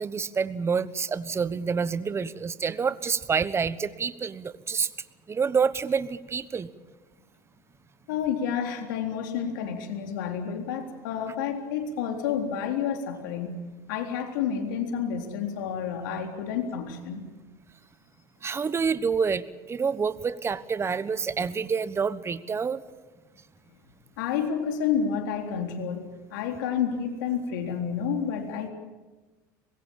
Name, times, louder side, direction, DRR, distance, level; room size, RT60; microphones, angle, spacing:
voice 1, 0.0-4.9 5.3-6.7 18.4-22.8, right 5 dB, 25° right, 15 dB, 1.2 m, -28 dB
voice 2, 8.1-13.6 13.9-17.2 24.2-28.7, left 7 dB, 80° left, 4 dB, 3.8 m, -30 dB
24.0 x 21.0 x 7.4 m, 1.2 s
supercardioid pair, 95°, 10 cm